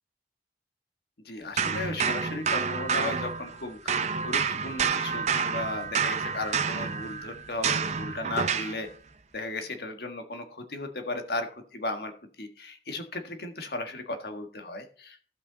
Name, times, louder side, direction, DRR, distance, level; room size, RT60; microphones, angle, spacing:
voice 1, 1.2-8.9 9.3-12.1 12.4-15.2, left 2 dB, 60° left, 5 dB, 1.7 m, -35 dB
sound 1, 1.6-3.6 3.9-8.8, right 6 dB, 40° right, 0.6 m, -29 dB
15.5 x 5.4 x 4.0 m, 0.43 s
head